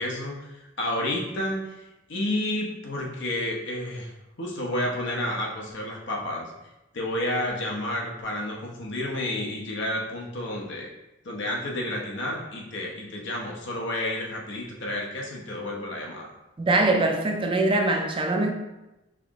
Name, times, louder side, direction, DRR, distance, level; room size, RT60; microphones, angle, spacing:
voice 1, 0.0-1.8 2.1-4.1 4.4-6.5 6.9-10.9 11.2-16.3, left 1 dB, 65° left, -2 dB, 1.0 m, -30 dB
voice 2, 16.6-18.5, right 2 dB, 25° right, 3 dB, 0.4 m, -22 dB
4.6 x 3.0 x 3.6 m, 0.97 s
head